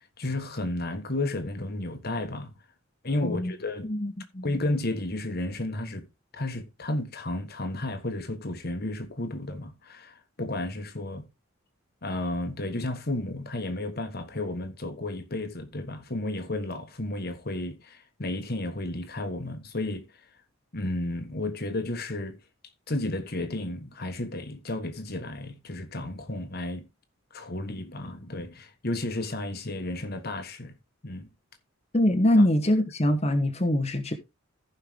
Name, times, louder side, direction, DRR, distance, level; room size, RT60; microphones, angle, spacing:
voice 1, 0.0-2.5 3.0-3.9 4.4-6.1 6.3-11.3 12.0-20.1 20.7-22.4 22.9-26.9 27.3-30.8 31.0-31.3, left 2 dB, 50° left, 1.4 m, -32 dB
voice 2, 3.8-4.5 31.9-34.1, left 1 dB, 30° left, 1.2 m, -23 dB
15.0 x 5.7 x 3.7 m
head